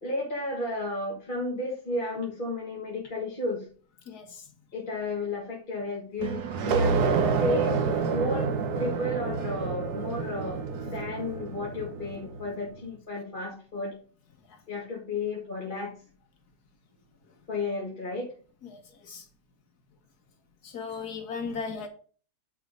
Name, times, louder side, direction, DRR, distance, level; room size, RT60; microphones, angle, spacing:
voice 1, 0.0-3.7 4.7-14.0 14.7-15.9 17.5-18.3, left 2 dB, 35° left, 1.8 m, -33 dB
voice 2, 4.1-4.4 14.5-14.6 18.7-19.3 20.6-21.9, left 5 dB, 80° left, 1.9 m, -37 dB
sound 1, 6.2-12.6, right 5 dB, 85° right, 1.5 m, -28 dB
9.4 x 3.6 x 5.3 m
omnidirectional pair, 1.6 m